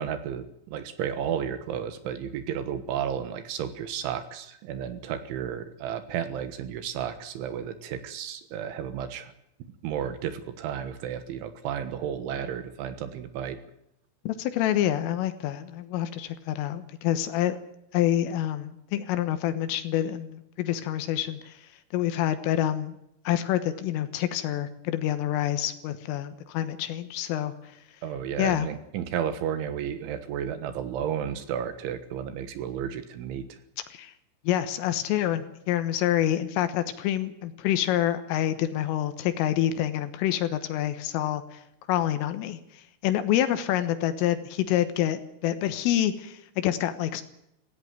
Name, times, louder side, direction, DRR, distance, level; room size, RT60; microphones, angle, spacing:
voice 1, 0.0-9.3 9.8-13.6 28.0-33.6, right 8 dB, 75° right, 11 dB, 3.7 m, -32 dB
voice 2, 14.3-17.6 17.9-22.9 23.3-27.5 28.4-28.7 33.9-34.1 34.5-41.6 41.9-47.2, left 12 dB, 80° left, 10 dB, 3.8 m, -27 dB
18.0 x 16.5 x 9.3 m, 0.79 s
omnidirectional pair, 5.8 m